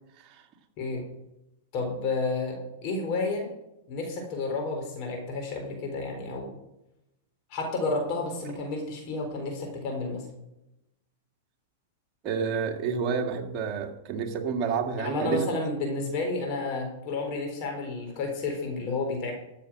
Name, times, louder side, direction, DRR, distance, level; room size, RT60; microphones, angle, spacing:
voice 1, 1.7-3.5 3.9-6.5 7.5-10.3 15.0-19.3, left 3 dB, 50° left, 2 dB, 3.9 m, -31 dB
voice 2, 12.2-15.5, right 6 dB, 35° right, 2 dB, 2.1 m, -29 dB
13.5 x 7.4 x 6.1 m, 0.89 s
hypercardioid pair, 125°, 0 cm